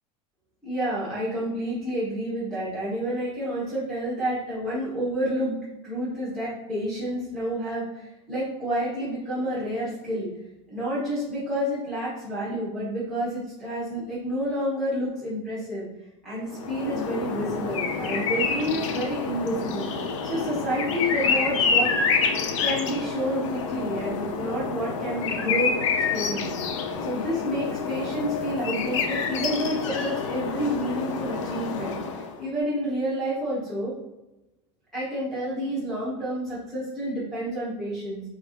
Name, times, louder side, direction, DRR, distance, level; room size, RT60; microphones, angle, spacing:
voice 1, 0.6-5.6 5.8-10.3 10.7-15.8 16.2-19.9 20.2-21.9 22.6-26.5 27.0-33.9 34.9-38.2, equal, ahead, -11 dB, 1.2 m, -29 dB
sound 1, 16.5-32.4, left 5 dB, 80° left, 0.6 m, -28 dB
6.7 x 3.1 x 2.4 m, 0.97 s
supercardioid pair, 180°, 16 cm